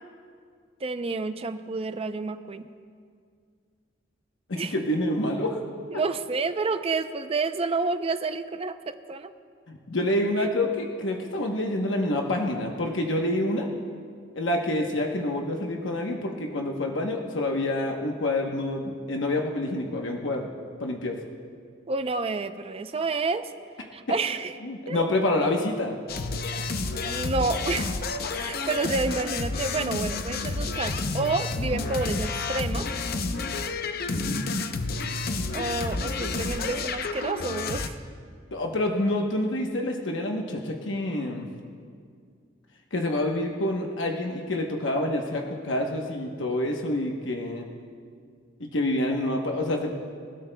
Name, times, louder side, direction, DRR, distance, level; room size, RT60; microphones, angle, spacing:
voice 1, 0.8-2.7 4.6-4.7 5.9-9.3 21.9-23.5 23.9-24.6 24.9-25.0 26.9-28.0 28.3-32.9 35.5-37.9, right 3 dB, 30° right, 10 dB, 0.5 m, -29 dB
voice 2, 4.5-5.6 5.9-6.0 9.7-13.7 14.4-20.5 20.8-21.2 24.1-24.2 24.6-26.0 34.1-34.4 38.5-41.5 42.9-47.7 48.6-49.9, left 1 dB, 75° left, 1 dB, 1.0 m, -27 dB
sound 1, 26.1-37.9, left 3 dB, 50° left, 0.6 m, -30 dB
26.0 x 12.5 x 2.3 m, 2.2 s
head